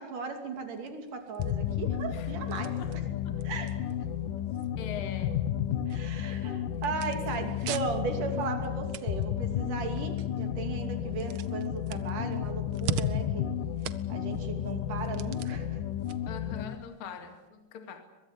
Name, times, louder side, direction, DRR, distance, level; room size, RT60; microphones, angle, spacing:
voice 1, 0.0-3.1 3.4-3.7 5.9-13.7 14.1-15.8, right 5 dB, 70° right, 6 dB, 4.4 m, -37 dB
sound 1, 0.5-17.5, right 10 dB, 90° right, 1.1 m, -45 dB
sound 2, 1.4-16.8, left 10 dB, 80° left, 2.6 m, -32 dB
voice 2, 4.8-5.5 6.3-6.5 16.3-18.0, left 7 dB, 45° left, 6 dB, 2.8 m, -42 dB
23.0 x 22.5 x 9.8 m, 1.1 s
omnidirectional pair, 3.8 m